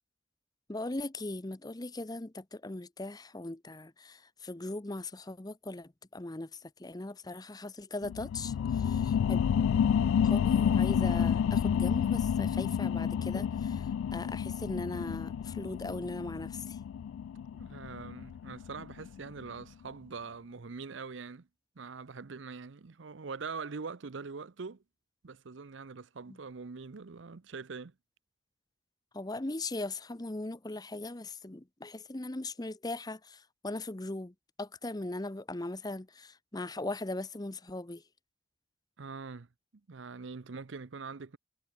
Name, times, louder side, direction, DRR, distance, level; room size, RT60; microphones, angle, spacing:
voice 1, 0.7-6.5 6.8-9.4 10.2-16.8 29.1-34.3 34.6-38.0, left 2 dB, 20° left, 0.8 m, -39 dB
sound 1, 8.0-19.2 19.6-19.7, left 8 dB, 90° left, 0.3 m, -29 dB
voice 2, 17.5-21.5 21.8-24.8 25.2-27.9 39.0-39.5 39.9-41.4, right 4 dB, 65° right, 0.7 m, -43 dB
head